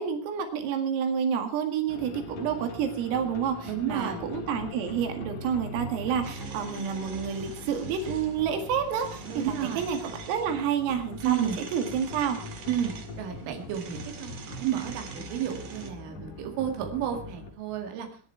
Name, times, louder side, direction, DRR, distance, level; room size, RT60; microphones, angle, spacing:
voice 1, 0.0-12.4, right 7 dB, 90° right, 6 dB, 4.7 m, -29 dB
sound 1, 1.9-17.5, left 2 dB, 50° left, 3.0 m, -41 dB
voice 2, 3.6-4.2 9.3-9.8 11.2-11.6 12.7-12.9 13.2-18.1, right 10 dB, 75° right, 4 dB, 4.5 m, -31 dB
sound 2, 6.2-15.9, right 5 dB, 50° right, 2.5 m, -45 dB
21.5 x 10.5 x 4.5 m, 0.39 s
omnidirectional pair, 5.7 m